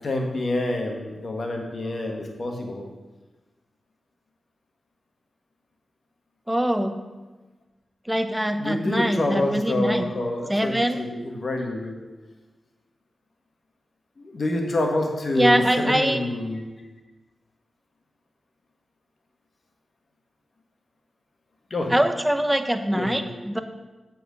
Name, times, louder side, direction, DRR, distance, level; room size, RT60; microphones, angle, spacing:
voice 1, 0.0-2.8 8.6-12.1 14.2-16.7 21.7-22.0 22.9-23.3, left 2 dB, 60° left, 2 dB, 1.5 m, -27 dB
voice 2, 6.5-6.9 8.1-10.1 10.5-11.0 15.4-16.2 21.9-23.6, right 1 dB, 10° right, 8 dB, 0.8 m, -23 dB
7.9 x 4.5 x 6.3 m, 1.2 s
cardioid pair, 40°, 0 cm